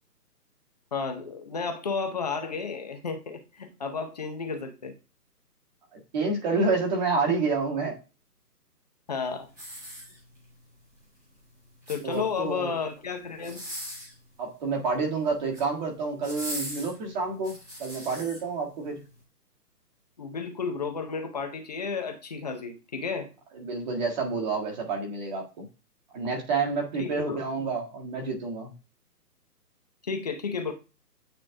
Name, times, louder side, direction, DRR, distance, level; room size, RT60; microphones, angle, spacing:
voice 1, 0.9-4.9 9.1-9.5 11.9-13.6 20.2-23.3 27.0-27.4 30.0-30.7, left 5 dB, 25° left, 6 dB, 0.7 m, -32 dB
voice 2, 5.9-8.0 12.0-12.8 14.4-17.5 17.8-19.0 23.5-25.7 26.1-28.7, right 4 dB, 30° right, 0 dB, 1.7 m, -29 dB
sound 1, 9.5-10.5 11.6-12.4 13.3-14.2 15.3-15.7 16.2-18.4 19.0-19.1, equal, 5° right, 1.4 m, -39 dB
8.8 x 3.2 x 3.7 m, 0.30 s
hypercardioid pair, 155°, 48 cm